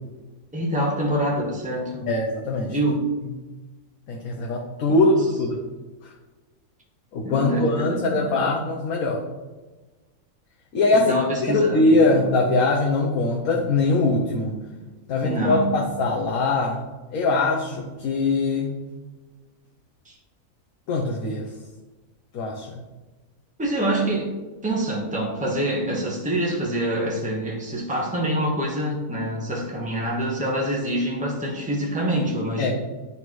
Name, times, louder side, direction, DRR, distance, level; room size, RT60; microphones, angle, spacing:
voice 1, 0.5-2.1 2.7-3.1 4.9-5.0 7.2-8.3 10.9-12.3 15.2-15.7 20.0-20.1 23.6-24.3 24.6-32.7, right 1 dB, 5° right, -3 dB, 1.2 m, -26 dB
voice 2, 2.1-2.8 4.1-5.6 7.1-9.2 10.7-11.1 11.4-14.6 15.1-16.8 17.1-18.8 20.9-21.5 22.3-22.8 32.6-32.7, left 2 dB, 70° left, 0 dB, 1.2 m, -22 dB
11.0 x 4.1 x 3.1 m, 1.2 s
omnidirectional pair, 1.6 m